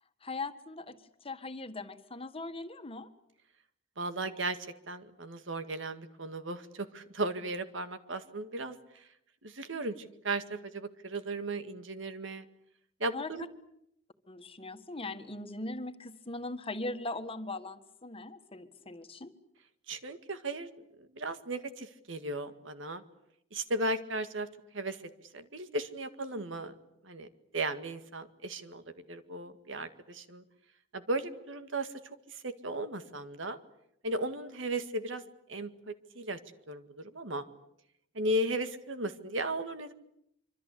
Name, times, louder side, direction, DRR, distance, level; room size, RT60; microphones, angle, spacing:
voice 1, 0.2-3.1 13.1-13.3 14.3-19.3, left 2 dB, 30° left, 8 dB, 1.7 m, -40 dB
voice 2, 4.0-4.6 4.9-8.8 9.4-12.5 13.0-13.5 19.9-20.7 21.0-23.0 23.5-24.5 24.7-25.0 25.3-26.8 27.0-27.3 27.5-28.8 29.1-30.4 30.9-31.9 32.4-33.6 34.0-35.2 35.5-36.4 36.7-37.4 38.2-39.9, right 1 dB, 80° right, 10 dB, 2.0 m, -36 dB
25.5 x 25.0 x 8.5 m, 0.76 s
head